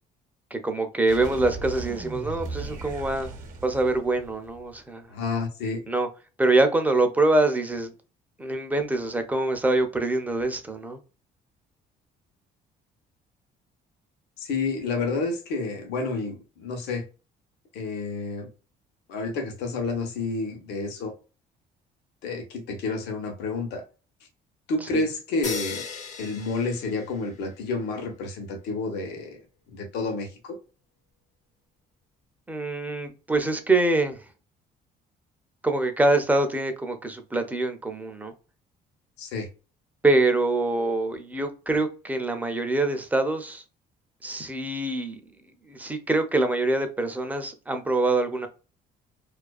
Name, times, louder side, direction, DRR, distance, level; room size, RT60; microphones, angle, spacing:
voice 1, 0.5-3.3 3.6-5.1 5.9-6.1 6.4-7.9 8.4-11.0 24.9-25.0 32.5-34.2 35.6-38.3 40.0-43.6 44.2-45.2 45.7-48.5, right 2 dB, 10° right, 0.5 m, -24 dB
sound 1, 1.1-4.8, right 3 dB, 50° right, 0.7 m, -37 dB
voice 2, 5.1-5.9 14.4-17.0 17.7-18.5 19.1-21.1 22.2-23.8 24.7-25.8 26.2-29.4 29.7-30.6 39.2-39.5, left 3 dB, 85° left, 0.8 m, -30 dB
sound 2, 25.4-27.6, left 5 dB, 45° left, 0.6 m, -36 dB
2.4 x 2.2 x 2.3 m
cardioid pair, 110°, 17 cm